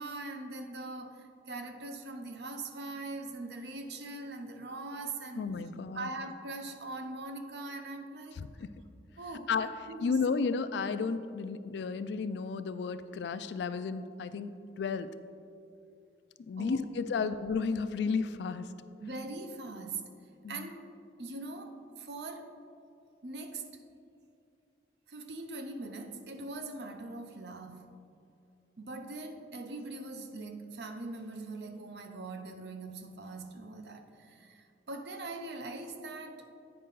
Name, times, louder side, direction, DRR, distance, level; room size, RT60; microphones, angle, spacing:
voice 1, 0.0-5.5 5.9-8.4 9.2-10.2 16.6-16.9 17.1-17.3 19.0-20.2 20.5-20.8 21.2-22.5 23.2-23.7 25.1-28.0 28.8-36.5, right 2 dB, 70° right, 5 dB, 0.6 m, -42 dB
voice 2, 5.4-6.1 8.4-8.7 9.5-9.7 10.0-14.5 14.8-15.1 16.5-18.7 20.4-20.7, left 5 dB, 75° left, 12 dB, 0.3 m, -33 dB
8.7 x 5.4 x 3.9 m, 2.5 s
head